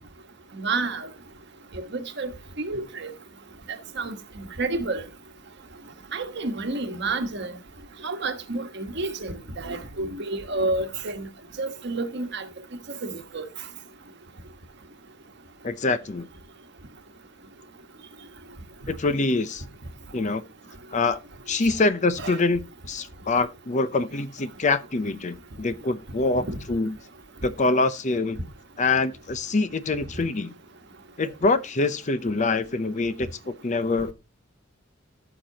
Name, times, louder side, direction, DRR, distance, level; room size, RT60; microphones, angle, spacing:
voice 1, 0.5-1.1 1.7-2.3 2.6-3.1 4.0-5.0 6.1-7.6 8.0-11.3 11.6-12.5 13.0-13.5 22.2-22.4 26.5-26.6, right 2 dB, 60° right, 1.4 m, -30 dB
voice 2, 15.6-16.3 18.9-19.6 20.1-20.4 20.9-21.2 21.5-22.6 22.9-26.9 27.4-28.4 28.8-30.5 31.2-34.1, left 3 dB, 35° left, 0.6 m, -25 dB
14.0 x 5.9 x 2.8 m
head